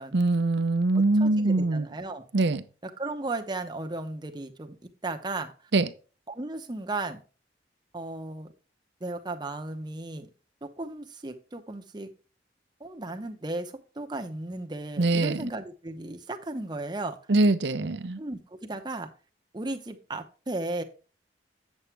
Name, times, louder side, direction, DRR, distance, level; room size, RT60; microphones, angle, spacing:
voice 1, 0.1-1.9 2.3-2.6 5.7-5.9 15.0-15.5 17.3-18.2, right 2 dB, 75° right, 0.6 m, -23 dB
voice 2, 0.9-2.2 2.8-5.5 6.3-7.2 7.9-8.5 9.0-10.3 10.6-12.1 12.8-17.2 18.2-19.1 19.5-20.8, right 2 dB, 25° right, 0.8 m, -35 dB
8.0 x 7.3 x 3.3 m
head